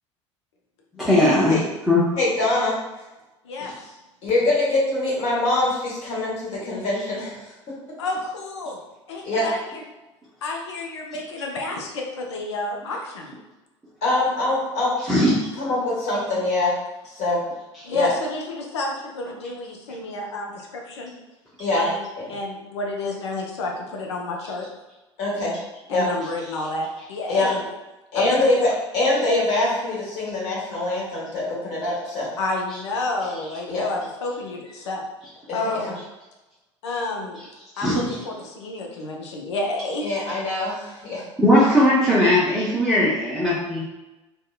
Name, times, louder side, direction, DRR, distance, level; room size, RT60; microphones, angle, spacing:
voice 1, 1.0-1.6 1.9-2.0 15.1-15.4 37.8-38.1 41.4-43.8, left 1 dB, ahead, -10 dB, 0.6 m, -18 dB
voice 2, 2.2-2.8 4.2-7.4 9.2-9.5 14.0-14.9 15.5-16.7 17.0-17.4 17.9-18.1 21.6-21.9 22.2-22.3 25.2-25.5 25.9-26.1 27.3-27.5 28.1-32.3 33.7-33.9 35.5-35.9 40.0-41.2, left 2 dB, 45° left, -5 dB, 1.0 m, -24 dB
voice 3, 3.4-3.9 8.0-8.8 9.1-9.8 10.4-13.3 17.8-21.1 21.8-24.7 25.9-27.6 28.1-28.7 32.4-35.0 35.5-36.0 36.8-37.4 37.8-40.1, left 2 dB, 65° left, 1 dB, 0.4 m, -30 dB
2.6 x 2.0 x 2.3 m, 1.0 s
figure-of-eight pair, 70°, 15 cm